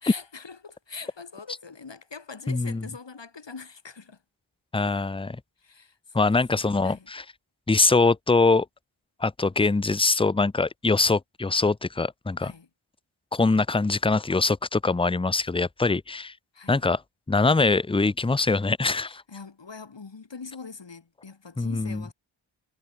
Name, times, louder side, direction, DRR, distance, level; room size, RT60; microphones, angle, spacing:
voice 1, 0.0-4.2 5.6-6.0 6.2-6.3 6.8-7.1 12.4-12.7 16.5-16.9 19.3-22.1, left 4 dB, 60° left, 3.6 m, -42 dB
voice 2, 2.5-2.9 4.7-5.4 6.1-7.3 7.7-8.7 9.2-12.5 13.3-16.3 16.7-17.0 17.3-19.2 21.6-22.0, left 3 dB, 10° left, 0.5 m, -23 dB
wide cardioid pair, 70°, 48 cm